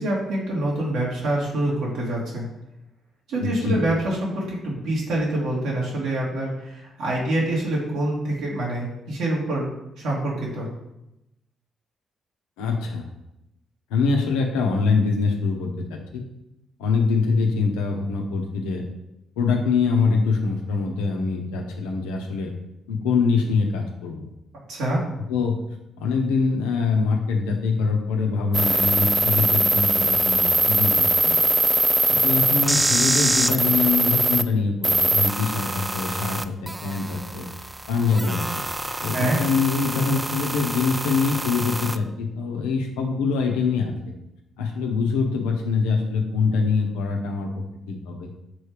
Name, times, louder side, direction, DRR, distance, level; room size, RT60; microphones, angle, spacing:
voice 1, 0.0-2.4 3.3-9.6 10.0-10.7 24.7-25.0 39.1-39.4, right 1 dB, 75° right, -4 dB, 2.1 m, -26 dB
voice 2, 3.4-3.8 12.6-13.1 13.9-16.2 16.8-18.8 19.4-22.5 22.9-24.3 25.3-25.6 26.0-31.5 32.1-37.5 37.9-38.6 39.0-43.9 44.6-48.3, left 4 dB, 85° left, 2 dB, 0.9 m, -24 dB
sound 1, 28.5-34.4 34.8-42.0, right 1 dB, 15° right, 0.4 m, -23 dB
6.1 x 3.4 x 4.8 m, 0.89 s
hypercardioid pair, 50°, 0 cm